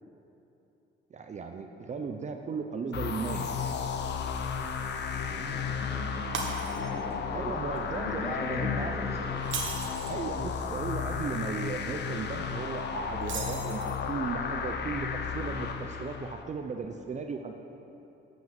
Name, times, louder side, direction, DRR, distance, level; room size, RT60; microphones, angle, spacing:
voice 1, 1.1-3.5 7.3-9.0 10.1-17.6, right 5 dB, 35° right, 5 dB, 0.6 m, -36 dB
sound 1, 2.9-16.4, left 6 dB, 60° left, 0.7 m, -33 dB
voice 2, 5.1-7.6 7.9-9.3, left 2 dB, 30° left, -4 dB, 2.3 m, -38 dB
Shatter, 6.3-7.1 7.5-7.8 9.4-10.2 13.2-14.1, right 4 dB, 70° right, 1.3 m, -37 dB
9.1 x 5.4 x 7.3 m, 3.0 s
cardioid pair, 90°, 20 cm